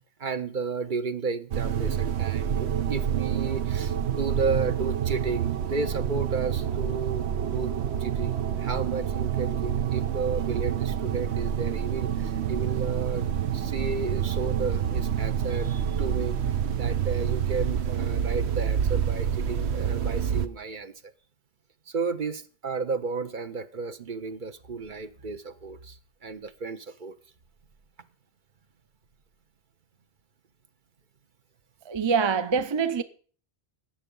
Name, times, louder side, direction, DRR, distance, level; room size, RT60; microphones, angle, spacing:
voice 1, 0.2-7.7 8.0-13.3 13.5-16.4 16.8-20.9 21.9-26.0 26.2-27.1, right 4 dB, 50° right, 1.0 m, -33 dB
sound 1, 1.5-20.5, right 9 dB, 90° right, 1.1 m, -28 dB
voice 2, 31.9-33.0, right 6 dB, 30° right, 0.6 m, -24 dB
13.0 x 8.8 x 5.3 m
omnidirectional pair, 1.1 m